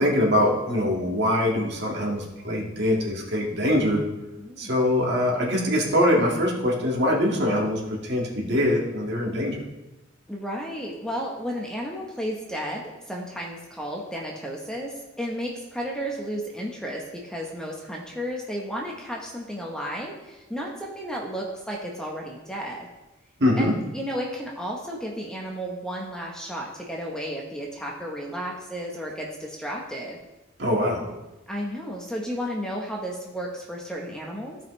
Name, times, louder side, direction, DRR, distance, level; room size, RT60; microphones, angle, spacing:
voice 1, 0.0-4.0 4.6-9.6 23.4-23.7 30.6-31.0, left 1 dB, 55° right, -2 dB, 1.9 m, -23 dB
voice 2, 4.4-4.8 10.3-22.9 23.6-30.2 31.5-34.6, equal, 5° left, -2 dB, 1.0 m, -33 dB
15.0 x 5.3 x 3.2 m, 1.0 s
head